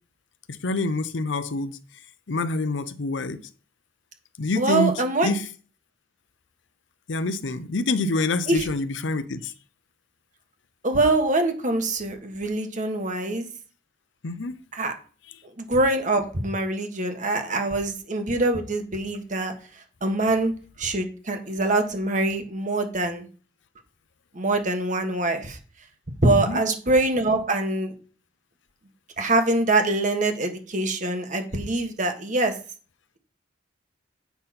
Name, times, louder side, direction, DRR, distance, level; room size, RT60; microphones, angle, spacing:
voice 1, 0.5-1.8 2.3-3.4 4.4-5.5 7.1-9.5 14.2-14.6 26.3-26.6, left 2 dB, 80° left, 0.7 m, -26 dB
voice 2, 4.6-5.3 8.5-8.6 10.8-13.5 14.7-14.9 15.6-19.5 20.0-20.5 20.8-23.3 24.3-25.6 26.2-27.9 29.2-32.5, right 2 dB, 45° right, 1.4 m, -24 dB
8.2 x 5.8 x 4.2 m
head